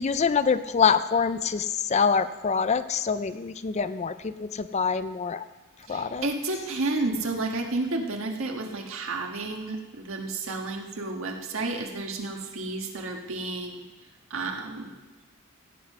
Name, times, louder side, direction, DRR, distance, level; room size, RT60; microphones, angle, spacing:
voice 1, 0.0-5.4 5.9-6.3, left 6 dB, 30° left, 12 dB, 0.4 m, -25 dB
voice 2, 5.9-13.8 14.3-14.9, right 2 dB, 65° right, 3 dB, 1.6 m, -31 dB
16.0 x 8.4 x 5.5 m, 1.2 s
head